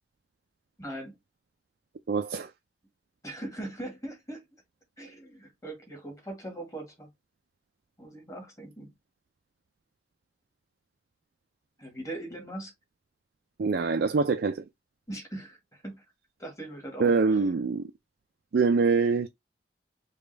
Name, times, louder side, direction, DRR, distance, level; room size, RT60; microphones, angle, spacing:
voice 1, 0.8-1.1 3.2-4.4 5.0-7.1 8.0-8.9 11.8-12.7 15.1-16.0 16.4-17.5, right 1 dB, 20° left, 1.7 m, -40 dB
voice 2, 2.1-2.5 13.6-14.6 17.0-17.9 18.5-19.3, right 4 dB, 60° right, 0.4 m, -24 dB
5.1 x 2.3 x 3.3 m
head